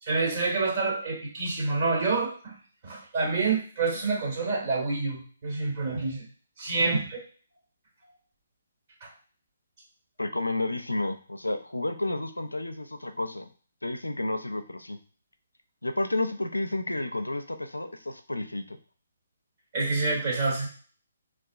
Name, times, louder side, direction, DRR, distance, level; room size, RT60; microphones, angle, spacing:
voice 1, 0.0-2.6 2.8-6.3 6.6-7.2 9.0-9.1 19.7-20.7, right 3 dB, 45° right, -4 dB, 1.4 m, -27 dB
voice 2, 10.2-13.5 13.8-15.0 15.8-18.8, left 2 dB, 90° left, 8 dB, 0.4 m, -31 dB
4.3 x 2.3 x 2.4 m, 0.41 s
figure-of-eight pair, 140°, 0 cm